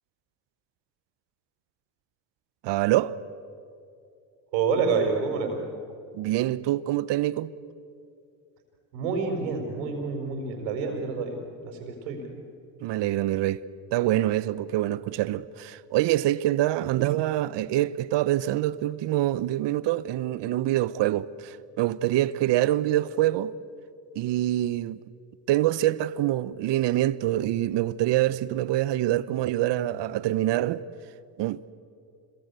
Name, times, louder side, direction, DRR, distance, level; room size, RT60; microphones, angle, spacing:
voice 1, 2.6-3.1 6.1-7.5 12.8-13.6 13.9-23.5 24.1-25.0 25.5-30.8 31.4-31.6, right 14 dB, 60° right, 1.0 m, -25 dB
voice 2, 4.5-5.6 8.9-12.3, right 5 dB, 85° right, 4.7 m, -28 dB
26.5 x 22.0 x 8.3 m
hypercardioid pair, 75°, 50 cm